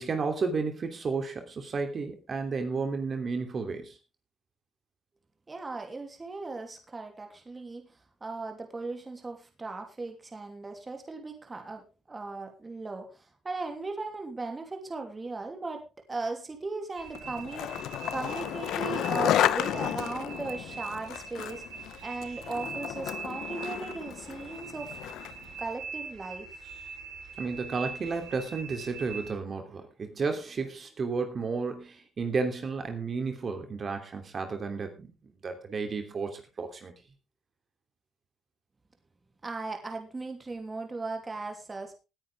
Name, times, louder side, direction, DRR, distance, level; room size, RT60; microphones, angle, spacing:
voice 1, 0.0-4.0 27.4-35.1 35.4-36.9, right 4 dB, 45° right, 6 dB, 2.9 m, -32 dB
voice 2, 5.5-21.6 22.0-25.0 25.6-26.6 39.4-41.9, right 3 dB, 25° right, 4 dB, 2.9 m, -38 dB
sound 1, 17.0-29.3, right 5 dB, 85° right, 7.6 m, -42 dB
Skateboard, 17.1-25.5, left 12 dB, 85° left, 0.8 m, -32 dB
19.0 x 9.8 x 3.5 m, 0.29 s
cardioid pair, 90°, 0 cm